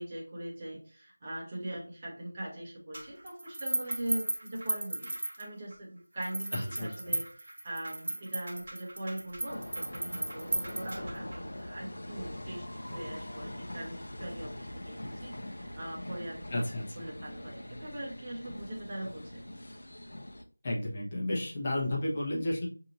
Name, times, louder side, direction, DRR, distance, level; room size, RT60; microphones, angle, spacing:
voice 1, 0.0-16.7 16.9-19.4, right 1 dB, 20° right, -4 dB, 1.1 m, -41 dB
sound 1, 2.9-5.7 6.2-11.4, right 2 dB, 45° right, 0.9 m, -36 dB
voice 2, 6.5-7.2 16.5-17.1 20.6-22.7, left 1 dB, 25° left, -4 dB, 1.0 m, -32 dB
sound 2, 9.5-20.4, left 1 dB, 55° left, 0.7 m, -43 dB
6.3 x 2.8 x 2.6 m, 0.39 s
figure-of-eight pair, 170°, 0 cm